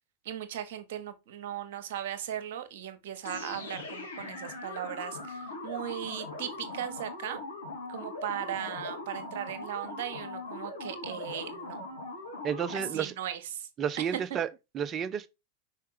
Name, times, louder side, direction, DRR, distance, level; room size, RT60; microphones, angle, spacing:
voice 1, 0.2-7.4 7.9-11.8 12.7-13.7 14.3-14.4, right 10 dB, 55° right, 1.2 m, -37 dB
sound 1, 3.2-13.1, left 2 dB, 75° left, 2.3 m, -41 dB
voice 2, 12.4-13.1 13.8-14.5 14.7-15.3, right 8 dB, 30° right, 0.6 m, -31 dB
5.7 x 4.8 x 4.8 m
figure-of-eight pair, 90°, 0 cm